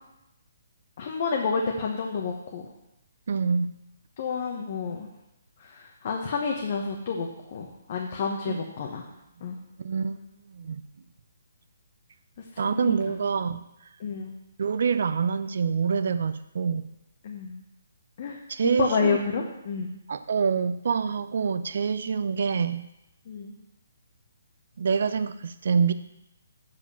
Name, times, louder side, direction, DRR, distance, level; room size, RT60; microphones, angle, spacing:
voice 1, 1.0-2.6 4.2-5.1 5.6-9.1 9.4-9.5 12.6-13.0 14.0-14.4 17.2-17.6 18.2-18.4 18.8-19.9 23.3-23.6, left 5 dB, 45° left, 1 dB, 1.1 m, -29 dB
voice 2, 3.3-3.7 8.5-8.6 9.8-10.2 10.5-10.8 12.6-13.6 14.6-16.9 18.5-19.2 20.1-22.9 24.8-25.9, right 6 dB, 60° right, 12 dB, 0.5 m, -26 dB
7.7 x 4.9 x 7.1 m, 0.88 s
hypercardioid pair, 145°, 0 cm